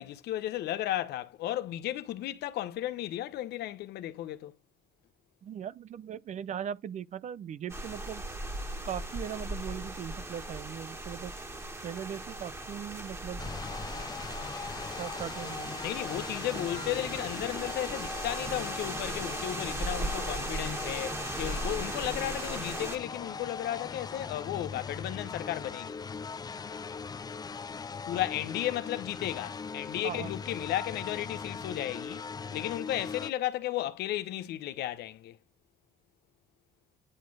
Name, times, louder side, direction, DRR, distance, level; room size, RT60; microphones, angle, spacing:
voice 1, 0.0-4.5 15.8-26.0 28.1-32.2 32.5-35.4, left 13 dB, 75° left, 1.0 m, -34 dB
voice 2, 5.4-8.2 8.8-11.3 11.8-13.4 15.0-15.7 30.0-30.3, right 9 dB, 45° right, 0.6 m, -39 dB
sound 1, 7.7-23.0, right 1 dB, 15° right, 1.9 m, -38 dB
sound 2, 13.4-33.3, left 5 dB, 25° left, 0.5 m, -40 dB
10.0 x 4.3 x 4.8 m
cardioid pair, 110°, 17 cm